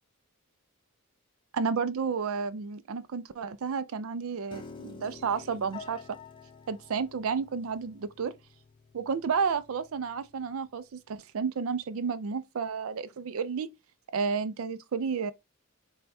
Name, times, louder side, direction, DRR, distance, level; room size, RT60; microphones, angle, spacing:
voice 1, 1.5-6.0 6.7-8.3 8.9-13.7 14.1-15.3, right 5 dB, 65° right, 0.4 m, -31 dB
Piano, 4.5-10.7, left 4 dB, 20° left, 0.6 m, -49 dB
4.3 x 2.2 x 4.1 m
head